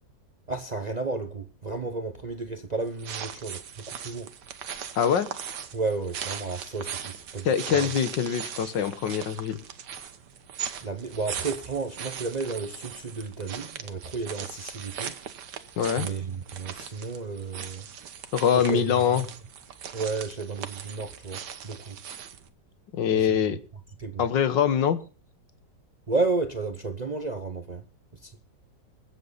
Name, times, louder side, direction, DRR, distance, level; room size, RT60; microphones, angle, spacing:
voice 1, 0.5-4.3 5.7-7.9 10.8-15.2 16.0-17.9 18.5-19.0 19.9-22.0 23.1-23.3 24.0-24.3 26.1-27.8 28.1-28.3, right 3 dB, 35° right, 0.7 m, -32 dB
sound 1, 2.8-22.5, right 8 dB, 70° right, 1.7 m, -39 dB
voice 2, 5.0-5.3 7.5-9.6 15.8-16.1 18.3-19.3 22.9-23.6 24.2-25.0, left 8 dB, 85° left, 1.8 m, -24 dB
23.5 x 8.1 x 4.0 m
omnidirectional pair, 1.9 m